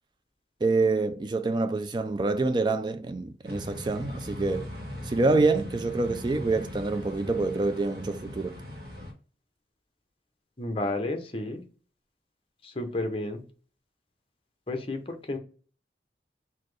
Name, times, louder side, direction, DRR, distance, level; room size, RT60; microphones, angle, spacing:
voice 1, 0.6-4.7 5.0-8.6, right 3 dB, 25° right, 0.3 m, -26 dB
sound 1, 3.4-9.1, left 1 dB, 60° right, 1.3 m, -39 dB
voice 2, 10.6-11.6 12.6-13.4 14.7-15.4, left 2 dB, 30° left, 0.7 m, -31 dB
4.1 x 2.8 x 3.2 m
head